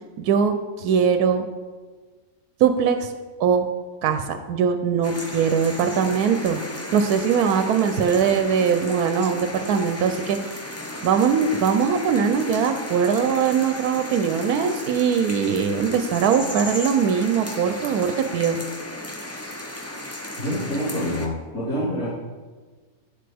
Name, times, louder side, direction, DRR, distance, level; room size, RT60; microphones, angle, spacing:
voice 1, 0.2-1.5 2.6-3.1 3.4-3.7 4.0-10.4 11.0-18.6, right 7 dB, 90° right, 8 dB, 1.1 m, -21 dB
sound 1, 5.0-21.3, left 1 dB, 20° left, 0.4 m, -35 dB
voice 2, 20.4-22.1, equal, 90° left, -14 dB, 3.9 m, -26 dB
11.0 x 7.7 x 3.4 m, 1.4 s
omnidirectional pair, 1.6 m